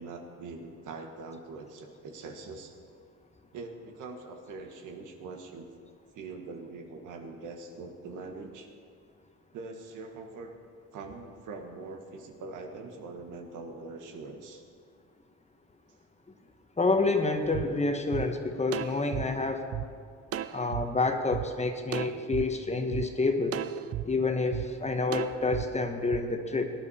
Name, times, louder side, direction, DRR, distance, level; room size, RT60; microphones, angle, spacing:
voice 1, 0.0-2.8 3.5-5.7 6.1-8.7 9.5-10.5 10.9-14.6, right 3 dB, 80° right, 4 dB, 1.6 m, -43 dB
voice 2, 16.8-19.7 20.5-23.6 24.0-26.7, left 3 dB, 20° left, 6 dB, 1.2 m, -28 dB
sound 1, 17.5-17.6 18.1-18.2 18.7-19.8 20.3-20.8 21.3-21.4 21.9-22.4 22.9-23.0 23.5-24.0 24.5-24.7 25.1-25.6 26.1-26.2, right 11 dB, 50° right, 0.6 m, -34 dB
18.0 x 10.5 x 4.3 m, 2.1 s
cardioid pair, 90°, 30 cm